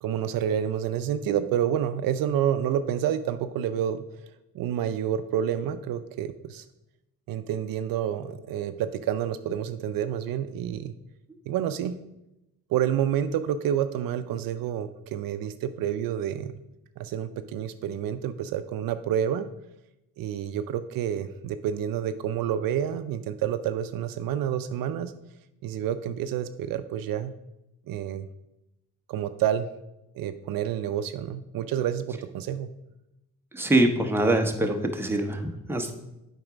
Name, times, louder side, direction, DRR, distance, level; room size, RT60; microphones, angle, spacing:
voice 1, 0.0-4.0 4.5-6.6 7.3-10.9 11.5-12.0 12.7-16.5 17.0-19.5 20.2-25.1 25.6-27.3 27.9-28.3 29.1-29.7 30.1-32.7, right 9 dB, 70° right, 11 dB, 0.5 m, -28 dB
voice 2, 33.5-35.9, right 1 dB, 5° right, 3 dB, 1.0 m, -24 dB
7.8 x 4.9 x 5.0 m, 0.91 s
cardioid pair, 90°, 36 cm